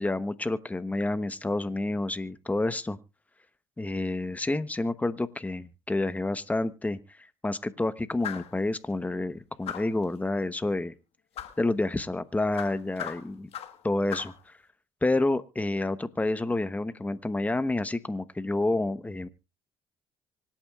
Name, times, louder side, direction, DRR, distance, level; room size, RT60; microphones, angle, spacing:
voice 1, 0.0-3.0 3.8-10.9 11.6-13.5 13.8-14.5 15.0-19.3, left 2 dB, 15° left, 12 dB, 1.0 m, -29 dB
sound 1, 8.2-8.6 9.7-10.0 11.4-11.6 12.6-13.8 14.1-14.4, left 10 dB, 65° left, 1.4 m, -38 dB
25.0 x 8.8 x 2.4 m, 0.30 s
supercardioid pair, 65°, 11 cm